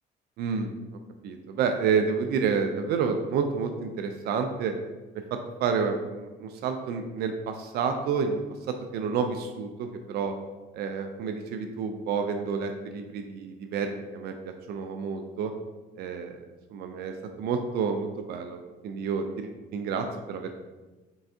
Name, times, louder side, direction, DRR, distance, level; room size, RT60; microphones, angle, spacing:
voice 1, 0.4-0.7 1.2-4.7 5.1-8.4 8.7-10.3 10.7-14.3 14.7-15.5 16.0-16.4 16.7-20.6, right 5 dB, 70° right, 6 dB, 0.4 m, -29 dB
4.6 x 3.2 x 2.6 m, 1.2 s
cardioid pair, 110°, 17 cm